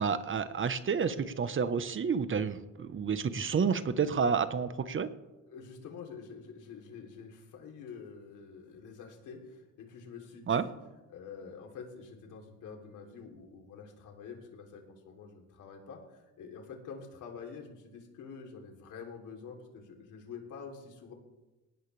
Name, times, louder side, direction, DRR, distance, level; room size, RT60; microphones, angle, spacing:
voice 1, 0.0-5.1 10.5-10.7, right 6 dB, 40° right, 12 dB, 1.1 m, -30 dB
voice 2, 5.5-10.7 11.1-21.1, left 5 dB, 85° left, 2 dB, 3.3 m, -47 dB
20.0 x 18.0 x 3.4 m, 1.1 s
cardioid pair, 90°, 30 cm